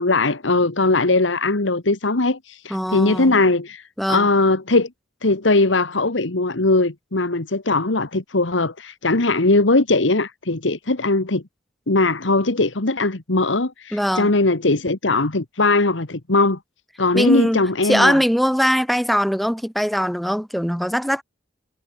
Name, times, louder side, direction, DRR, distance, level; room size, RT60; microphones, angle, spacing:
voice 1, 0.0-3.8 4.1-4.9 5.2-11.4 11.9-16.6 17.0-18.2, left 2 dB, 85° left, 1.7 m, -20 dB
voice 2, 2.7-3.4 4.0-4.3 13.9-14.3 17.1-21.2, equal, ahead, 4.8 m, -21 dB
head